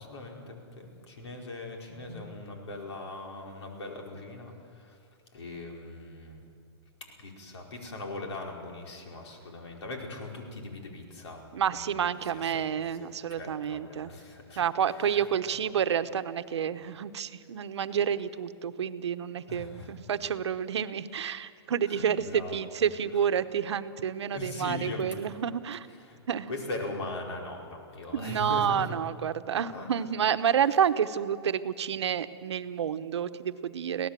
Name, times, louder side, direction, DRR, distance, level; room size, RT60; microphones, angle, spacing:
voice 1, 0.0-5.0 5.3-6.4 7.0-13.1 13.4-15.3 19.5-20.0 21.9-22.6 24.3-25.3 26.0-26.2 26.5-28.9 29.6-29.9, left 2 dB, 85° left, 1 dB, 5.0 m, -40 dB
voice 2, 11.5-14.1 14.6-25.9 26.3-26.5 28.1-34.1, right 8 dB, 85° right, 11 dB, 1.0 m, -29 dB
24.5 x 17.5 x 7.6 m, 2.2 s
hypercardioid pair, 175°, 14 cm